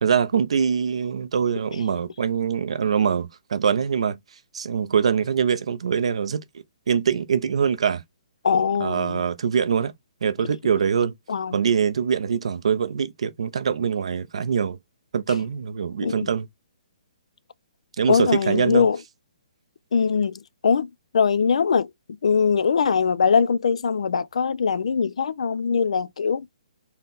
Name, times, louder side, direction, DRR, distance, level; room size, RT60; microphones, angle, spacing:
voice 1, 0.0-4.2 4.5-6.4 6.9-8.0 8.8-9.9 10.2-11.1 11.5-14.8 15.1-16.5 18.0-18.9, right 7 dB, 50° right, 0.6 m, -23 dB
voice 2, 8.4-9.2 11.3-11.6 16.0-16.3 18.1-19.0 19.9-20.9 21.1-21.9 22.2-26.5, left 6 dB, 55° left, 0.4 m, -21 dB
4.2 x 2.1 x 3.7 m
hypercardioid pair, 180°, 4 cm